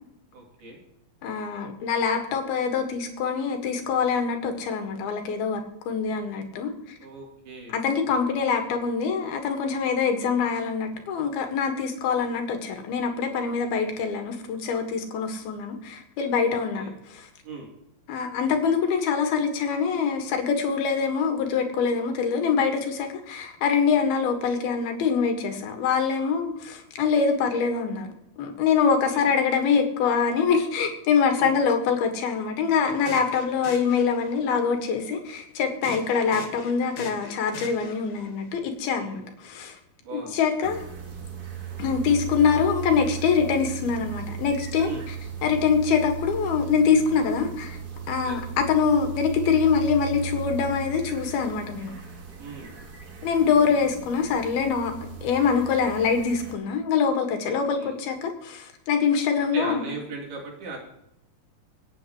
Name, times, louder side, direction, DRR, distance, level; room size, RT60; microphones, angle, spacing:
voice 1, 0.3-0.8 7.0-7.8 16.5-16.9 17.4-17.7 29.1-29.3 31.4-31.6 36.0-36.4 39.0-39.2 40.0-40.7 44.8-45.1 48.2-48.4 52.4-52.8 57.4-58.0 59.5-60.8, right 3 dB, 75° right, -1 dB, 5.2 m, -39 dB
voice 2, 1.2-5.6 5.9-6.7 7.7-16.9 18.1-28.1 28.4-39.2 39.5-39.7 40.1-40.8 41.8-44.9 45.4-47.8 48.1-52.0 53.2-54.9 55.2-59.9, left 6 dB, 75° left, 4 dB, 3.6 m, -24 dB
sound 1, 32.9-34.6 35.8-38.3, left 4 dB, 55° left, 3.5 m, -41 dB
sound 2, 40.6-56.5, right 7 dB, 45° right, 1.3 m, -37 dB
25.5 x 9.4 x 3.1 m, 0.84 s
omnidirectional pair, 4.5 m